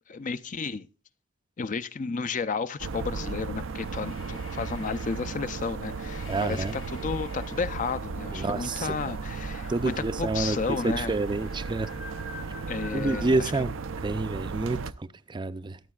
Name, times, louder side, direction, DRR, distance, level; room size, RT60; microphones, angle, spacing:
voice 1, 0.1-0.9 1.6-11.1 12.7-13.5, left 5 dB, 40° left, 0.5 m, -32 dB
sound 1, 2.8-14.9, right 4 dB, 85° right, 0.5 m, -35 dB
sound 2, 3.5-13.3, left 3 dB, 85° left, 2.7 m, -48 dB
voice 2, 6.3-6.7 8.3-9.1 9.7-10.6 10.8-11.9 12.9-15.8, right 3 dB, 25° right, 0.4 m, -29 dB
21.5 x 8.4 x 2.3 m
head